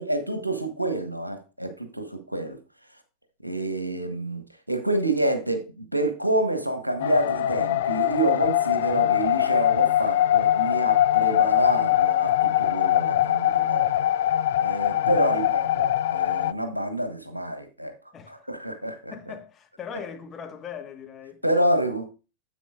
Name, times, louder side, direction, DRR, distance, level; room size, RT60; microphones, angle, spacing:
voice 1, 0.0-2.6 3.4-4.4 4.7-14.1 14.6-17.9 18.3-19.1 21.4-22.0, right 1 dB, 85° right, 1.2 m, -27 dB
sound 1, 7.0-16.5, left 12 dB, 55° left, 0.3 m, -22 dB
voice 2, 15.0-15.3 18.1-18.4 19.1-21.4, left 7 dB, 25° left, 1.3 m, -40 dB
10.0 x 7.8 x 2.4 m
figure-of-eight pair, 90°, 0 cm